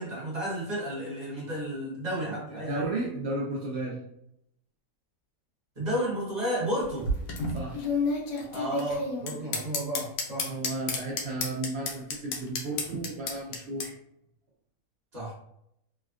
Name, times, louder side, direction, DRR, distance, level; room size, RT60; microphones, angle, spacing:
voice 1, 0.0-2.9 5.8-7.1 8.5-10.5 15.1-15.3, equal, 30° right, -6 dB, 1.0 m, -32 dB
voice 2, 2.7-4.0 7.5-7.8 10.4-13.9, right 2 dB, 85° right, -4 dB, 0.5 m, -33 dB
sound 1, 6.8-13.9, left 3 dB, 90° left, 1.3 m, -31 dB
3.4 x 2.2 x 2.3 m, 0.75 s
omnidirectional pair, 1.8 m